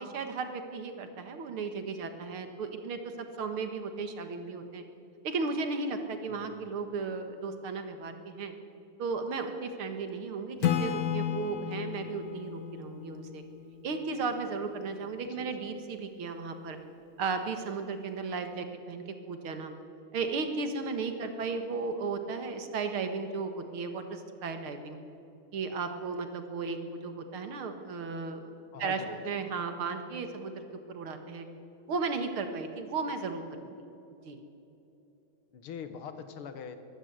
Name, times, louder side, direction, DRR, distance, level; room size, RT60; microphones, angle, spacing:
voice 1, 0.0-4.8 5.2-8.5 9.0-13.4 13.8-16.8 17.2-19.7 20.1-25.0 25.5-28.5 28.8-31.5 31.9-33.7 34.3-34.4, right 4 dB, 75° right, 7 dB, 2.5 m, -35 dB
voice 2, 6.3-6.8 15.3-15.7 28.7-29.4 35.5-36.8, left 7 dB, 90° left, 9 dB, 2.3 m, -44 dB
Acoustic guitar / Strum, 10.6-14.2, left 9 dB, 55° left, 1.1 m, -33 dB
23.0 x 15.5 x 8.1 m, 3.0 s
omnidirectional pair, 2.3 m